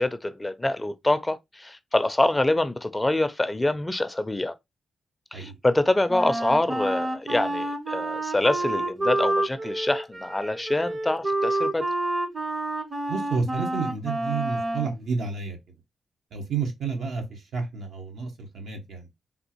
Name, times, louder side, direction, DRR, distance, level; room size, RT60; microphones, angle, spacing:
voice 1, 0.0-4.5 5.3-11.9, left 2 dB, 20° left, 0.4 m, -25 dB
Wind instrument woodwind instrument, 6.1-15.0, right 1 dB, 35° right, 0.7 m, -28 dB
voice 2, 13.1-15.6 16.3-17.2 17.5-18.3 18.5-19.1, right 5 dB, 80° right, 0.9 m, -30 dB
3.5 x 2.4 x 2.8 m
cardioid pair, 55°, 0 cm